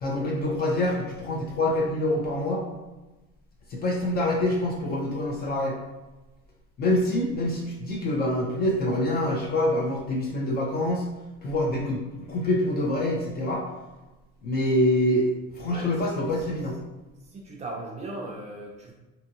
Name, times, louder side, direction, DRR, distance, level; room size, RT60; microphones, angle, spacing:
voice 1, 0.0-2.6 3.7-5.8 6.8-11.1 11.4-13.6 14.4-16.8, left 1 dB, 30° left, -1 dB, 0.4 m, -26 dB
voice 2, 15.7-16.6 17.3-18.9, right 2 dB, 20° right, -2 dB, 0.5 m, -38 dB
2.6 x 2.5 x 2.7 m, 1.1 s
cardioid pair, 135°, 31 cm